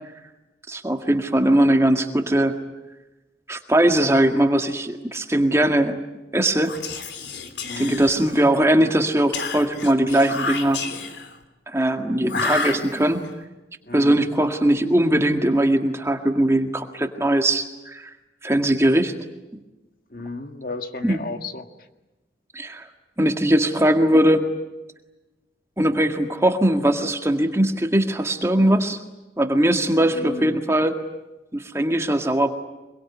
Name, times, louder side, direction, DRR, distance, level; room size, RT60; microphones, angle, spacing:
voice 1, 0.7-2.6 3.5-6.0 6.3-6.8 7.8-10.8 11.7-13.3 13.9-18.1 18.4-19.1 19.5-19.6 21.0-21.2 22.5-22.9 23.2-24.5 25.8-29.0 29.4-31.0 31.5-32.5, right 1 dB, 15° right, 5 dB, 1.8 m, -20 dB
Whispering, 6.6-8.6 9.3-11.4 12.3-13.3, left 4 dB, 80° left, 3.1 m, -30 dB
voice 2, 7.7-8.1 13.9-14.3 20.1-21.7 30.1-30.6, left 2 dB, 50° left, 6 dB, 1.8 m, -33 dB
26.0 x 23.0 x 9.7 m, 1.0 s
head